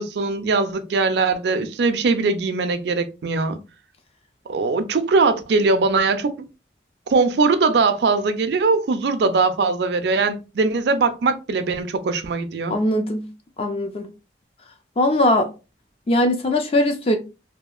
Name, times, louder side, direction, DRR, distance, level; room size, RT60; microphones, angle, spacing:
voice 1, 0.0-3.6 4.5-6.3 7.1-12.8, right 4 dB, 70° right, 0.4 m, -21 dB
voice 2, 12.7-13.3 13.6-14.1 15.0-15.5 16.1-17.2, left 1 dB, 35° left, 0.3 m, -20 dB
2.7 x 2.4 x 2.3 m
head